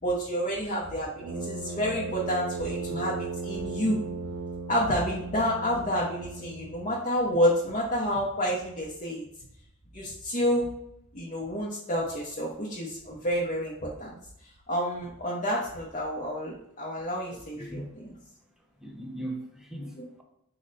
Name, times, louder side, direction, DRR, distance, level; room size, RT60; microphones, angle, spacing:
voice 1, 0.0-4.0 4.7-9.2 9.9-10.7 11.1-14.2 14.7-18.1 19.8-20.0, equal, 35° left, -4 dB, 0.7 m, -29 dB
Brass instrument, 1.2-7.1, right 4 dB, 65° right, 0.7 m, -36 dB
voice 2, 17.3-18.0 18.8-20.2, right 1 dB, ahead, 1 dB, 0.5 m, -39 dB
4.9 x 2.1 x 3.9 m, 0.76 s
head